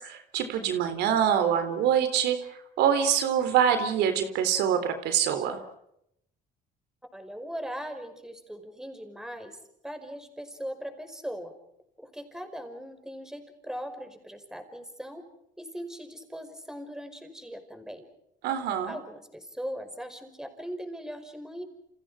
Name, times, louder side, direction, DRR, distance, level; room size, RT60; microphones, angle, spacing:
voice 1, 0.0-2.4 2.8-5.6 18.4-18.9, right 8 dB, 85° right, 9 dB, 3.8 m, -25 dB
voice 2, 7.1-9.6 9.8-11.5 12.0-15.3 15.6-18.0 18.8-21.6, equal, 5° right, 6 dB, 5.3 m, -39 dB
30.0 x 28.0 x 5.1 m, 0.76 s
cardioid pair, 110°, 17 cm